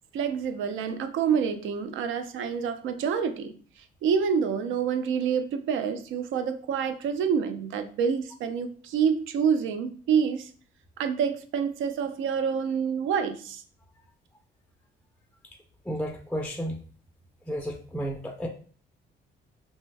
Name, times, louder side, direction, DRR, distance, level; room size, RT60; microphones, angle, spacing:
voice 1, 0.1-10.5 11.0-13.6, right 7 dB, 80° right, 0.4 m, -27 dB
voice 2, 15.8-16.8 17.5-18.5, equal, 5° left, 0.4 m, -32 dB
2.6 x 2.1 x 3.2 m
cardioid pair, 90°, 20 cm